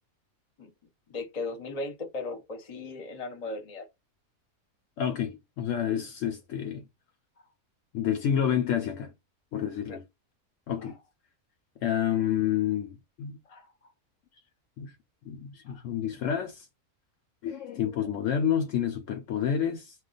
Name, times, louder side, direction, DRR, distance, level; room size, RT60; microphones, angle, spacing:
voice 1, 1.1-3.9 7.4-7.5 9.9-10.0 10.8-10.9 13.5-13.9 15.7-15.8, left 3 dB, 35° left, 0.7 m, -37 dB
voice 2, 5.0-6.9 7.9-9.1 9.5-10.0 10.7-10.9 11.8-13.4 14.8-14.9 15.3-16.7 17.4-19.9, left 9 dB, 70° left, 0.9 m, -29 dB
2.3 x 2.2 x 3.8 m
omnidirectional pair, 1.5 m